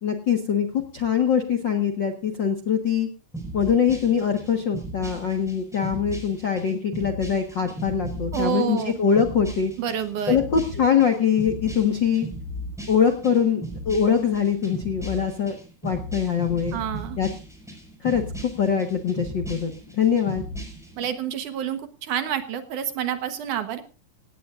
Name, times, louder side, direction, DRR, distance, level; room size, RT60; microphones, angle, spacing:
voice 1, 0.0-3.1 3.5-9.7 10.3-12.3 12.9-15.5 15.8-16.8 17.2-17.3 18.0-20.4, left 7 dB, 50° left, 5 dB, 1.3 m, -23 dB
sound 1, 3.3-21.1, right 1 dB, ahead, 5.3 m, -37 dB
voice 2, 8.3-9.0 9.8-10.4 16.7-17.2 21.0-23.8, right 9 dB, 65° right, 9 dB, 2.5 m, -28 dB
17.5 x 17.5 x 2.5 m, 0.34 s
omnidirectional pair, 4.2 m